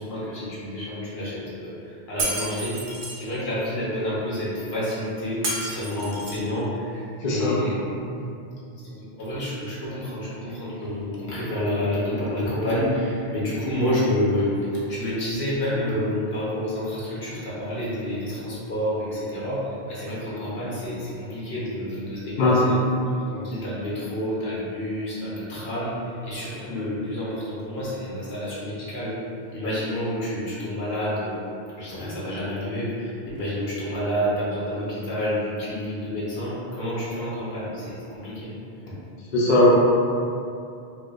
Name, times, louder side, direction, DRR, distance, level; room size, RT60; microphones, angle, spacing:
voice 1, 0.0-7.8 8.8-22.8 23.3-25.9 26.2-29.2 29.5-31.4 31.8-38.5 38.9-39.0, left 1 dB, 80° left, -8 dB, 1.2 m, -29 dB
Shatter, 2.2-3.2 5.4-6.5, right 2 dB, 60° right, 0.7 m, -30 dB
voice 2, 7.2-7.6 22.4-22.6 39.3-39.7, left 2 dB, 55° left, -6 dB, 0.7 m, -18 dB
4.4 x 2.3 x 2.4 m, 2.6 s
omnidirectional pair, 1.0 m